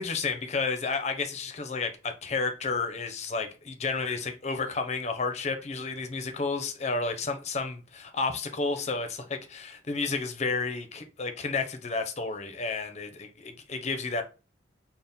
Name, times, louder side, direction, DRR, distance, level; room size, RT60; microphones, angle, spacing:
voice 1, 0.0-14.2, left 4 dB, 35° left, 0.5 m, -31 dB
4.1 x 2.1 x 3.4 m
head